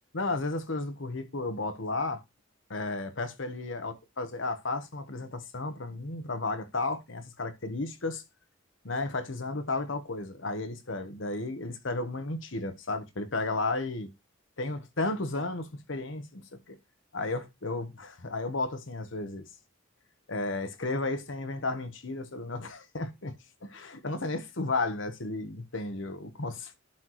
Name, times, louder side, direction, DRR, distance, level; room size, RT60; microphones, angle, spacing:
voice 1, 0.1-2.2 2.7-8.2 8.8-14.1 14.6-16.8 17.1-19.5 20.3-23.3 23.6-26.7, left 2 dB, 65° left, 1.1 m, -33 dB
11.5 x 4.3 x 3.1 m
head